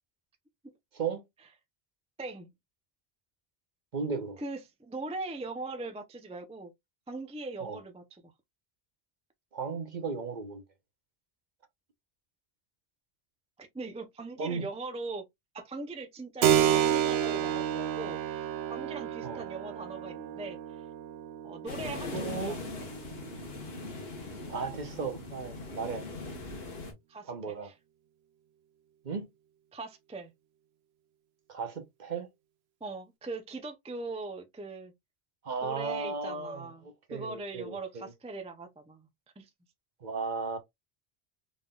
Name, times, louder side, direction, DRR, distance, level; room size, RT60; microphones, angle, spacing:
voice 1, 2.2-2.5 4.4-6.7 7.1-8.3 13.6-15.2 15.5-20.8 21.4-22.6 27.1-27.3 27.6-27.7 29.7-30.3 32.8-34.9 35.6-36.8 37.1-39.1 39.4-39.5, right 3 dB, 10° right, 0.4 m, -40 dB
voice 2, 3.9-4.4 7.6-7.8 9.5-10.6 14.4-14.7 19.2-19.4 22.1-22.5 24.5-26.1 27.2-27.7 29.0-29.3 31.5-32.3 35.4-38.1 40.0-40.6, right 4 dB, 50° right, 0.9 m, -35 dB
Keyboard (musical), 16.4-24.6, right 9 dB, 80° right, 0.8 m, -31 dB
sound 1, 21.7-26.9, left 3 dB, 70° left, 1.4 m, -40 dB
3.9 x 3.6 x 2.3 m
omnidirectional pair, 1.1 m